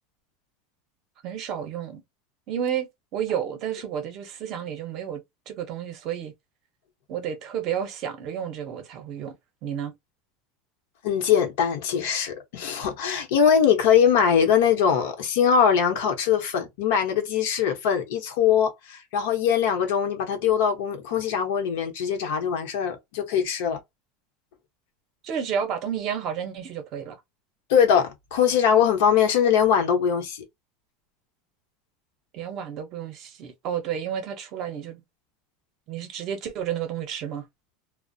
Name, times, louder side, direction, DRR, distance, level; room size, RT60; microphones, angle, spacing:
voice 1, 1.2-2.0 2.5-6.3 7.1-9.3 9.6-9.9 25.2-27.2 32.3-35.0 35.9-37.4, right 8 dB, 40° right, 0.6 m, -31 dB
voice 2, 11.0-23.8 27.7-30.4, left 8 dB, 75° left, 0.8 m, -22 dB
2.4 x 2.0 x 2.6 m
supercardioid pair, 160°, 0 cm